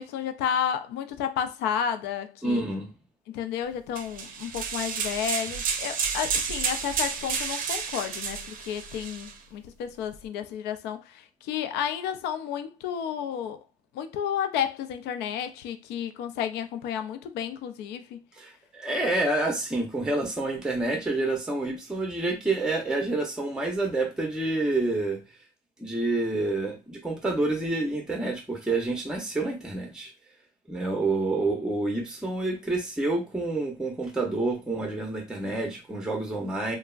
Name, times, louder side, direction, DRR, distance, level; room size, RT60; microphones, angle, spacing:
voice 1, 0.0-2.6 3.3-13.6 13.9-18.2, left 8 dB, 85° left, 0.4 m, -31 dB
voice 2, 2.4-2.9 18.4-25.2 25.8-30.1 30.7-36.8, right 2 dB, 5° right, 0.7 m, -28 dB
sound 1, 4.0-9.3, right 6 dB, 55° right, 0.5 m, -31 dB
3.3 x 2.0 x 2.4 m
cardioid pair, 110°, 17 cm